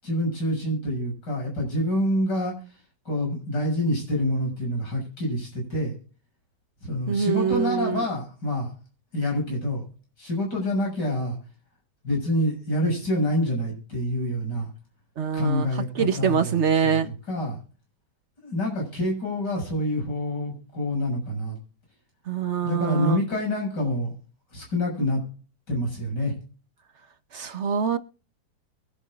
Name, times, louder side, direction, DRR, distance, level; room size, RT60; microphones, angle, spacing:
voice 1, 0.0-2.5 3.1-5.9 6.8-8.7 9.1-9.8 10.2-11.4 12.0-14.7 15.3-17.0 17.3-17.6 18.4-21.6 22.6-24.1 24.5-25.2 25.7-26.4, left 1 dB, 85° left, 7.5 m, -27 dB
voice 2, 7.1-8.0 15.2-15.7 16.0-17.1 22.3-23.2 27.3-28.0, right 7 dB, 50° right, 1.0 m, -24 dB
23.0 x 9.0 x 2.5 m
omnidirectional pair, 1.8 m